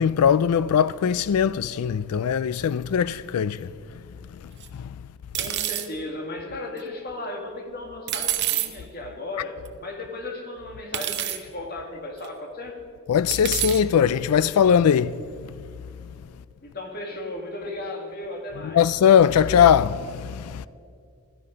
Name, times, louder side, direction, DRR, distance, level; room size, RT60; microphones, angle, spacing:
voice 1, 0.0-3.7 4.7-5.0 13.1-15.2 18.6-20.7, left 8 dB, 85° left, 0.4 m, -20 dB
sound 1, 4.6-4.7 5.3-5.9 8.1-8.7 9.7-9.8 10.9-11.4 12.2-12.3 13.3-13.8, right 12 dB, 50° right, 0.9 m, -27 dB
voice 2, 5.4-12.8 16.6-18.8, left 2 dB, 45° left, 2.1 m, -35 dB
16.0 x 13.0 x 5.2 m
head